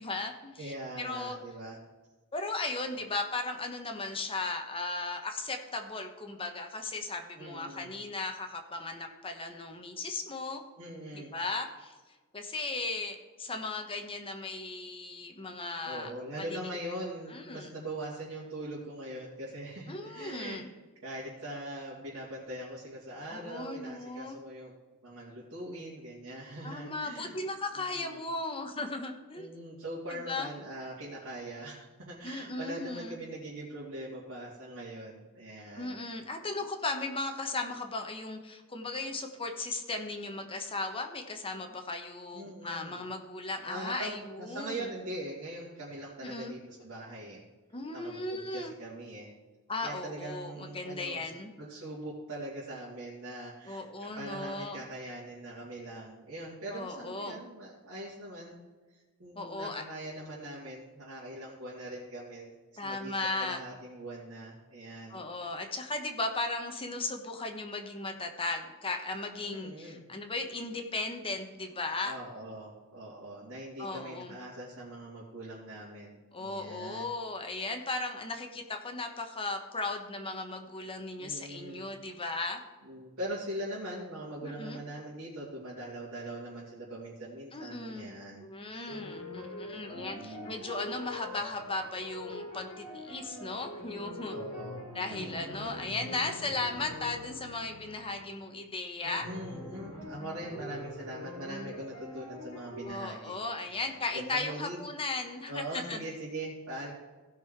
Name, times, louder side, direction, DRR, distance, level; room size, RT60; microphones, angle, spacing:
voice 1, 0.0-1.4 2.3-10.6 11.1-11.9 12.3-16.1 16.4-16.5 17.3-17.7 19.9-20.7 23.3-24.4 26.6-29.5 30.1-30.5 32.2-33.2 35.7-44.9 46.2-46.6 47.7-48.7 49.7-51.5 53.6-54.8 56.7-57.4 59.3-59.8 62.8-63.6 65.1-72.2 73.8-74.3 76.3-82.6 84.4-84.8 87.5-88.1 88.4-94.3 94.9-99.3 102.8-106.0, left 3 dB, 25° left, 4 dB, 1.1 m, -36 dB
voice 2, 0.6-1.8 7.4-7.9 10.8-11.3 15.8-20.6 21.0-24.7 25.0-27.3 27.7-28.2 29.3-36.0 42.3-43.0 43.6-47.4 47.9-49.3 49.8-51.3 51.6-58.6 58.9-62.5 62.8-65.2 69.5-70.1 72.0-77.1 81.2-81.8 82.8-88.5 88.7-88.9 89.9-90.6 94.3-94.8 95.1-95.7 99.0-104.8 105.5-106.9, right 1 dB, 65° right, -8 dB, 2.6 m, -42 dB
sound 1, 88.9-98.3 99.2-102.8, left 1 dB, 65° left, 4.0 m, -44 dB
16.5 x 5.6 x 4.7 m, 1.3 s
head